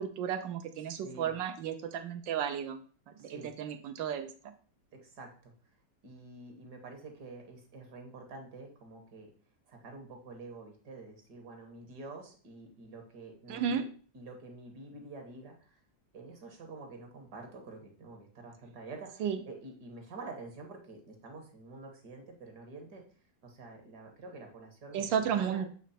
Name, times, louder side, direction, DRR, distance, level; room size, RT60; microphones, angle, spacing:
voice 1, 0.0-2.8 3.2-4.3 13.5-13.8 19.2-19.4 24.9-25.7, right 8 dB, 85° right, 7 dB, 1.4 m, -33 dB
voice 2, 1.0-1.3 3.2-3.5 4.9-5.5 6.0-9.3 9.7-13.9 14.1-15.8 16.1-23.0 23.4-25.6, right 3 dB, 65° right, 3 dB, 1.7 m, -48 dB
7.9 x 3.1 x 4.2 m, 0.42 s
omnidirectional pair, 2.0 m